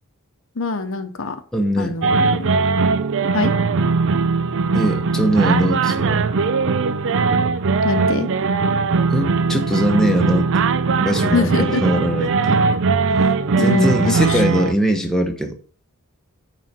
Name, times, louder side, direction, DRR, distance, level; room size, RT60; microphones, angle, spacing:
voice 1, 0.6-1.4 1.8-2.5 3.3-3.5 7.8-8.3 11.3-11.8 13.6-14.4, left 3 dB, 65° left, 1.0 m, -23 dB
voice 2, 1.5-2.0 4.7-6.3 9.1-10.5 11.0-12.7 13.6-15.6, equal, 5° left, 1.1 m, -21 dB
sound 1, 2.0-14.7, right 4 dB, 60° right, 0.5 m, -19 dB
9.5 x 4.1 x 6.1 m
head